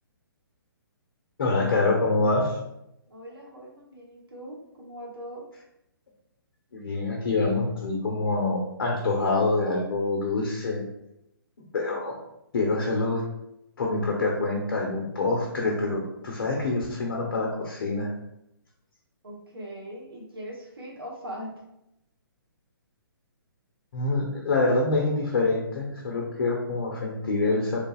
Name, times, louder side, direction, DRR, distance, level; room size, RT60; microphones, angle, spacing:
voice 1, 1.4-2.6 6.7-10.9 11.7-12.2 12.5-13.2 13.8-18.1 23.9-27.8, left 3 dB, 60° left, 0 dB, 0.8 m, -26 dB
voice 2, 3.1-5.4 19.2-21.5, equal, 80° right, -2 dB, 1.2 m, -40 dB
3.9 x 3.2 x 2.3 m, 0.82 s
hypercardioid pair, 140°, 12 cm